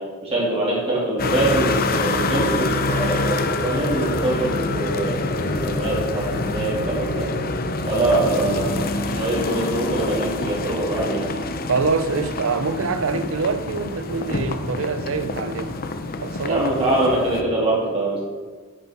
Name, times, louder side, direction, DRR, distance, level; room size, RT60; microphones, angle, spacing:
voice 1, 0.0-7.3 7.9-8.8 9.1-11.3 16.5-18.2, right 2 dB, 25° right, 3.0 m, -23 dB
sound 1, 1.2-17.4, left 2 dB, 45° left, 0.7 m, -26 dB
voice 2, 8.3-8.9 11.7-15.8 16.2-16.7, right 4 dB, 65° right, 0.7 m, -25 dB
9.7 x 9.3 x 4.5 m
head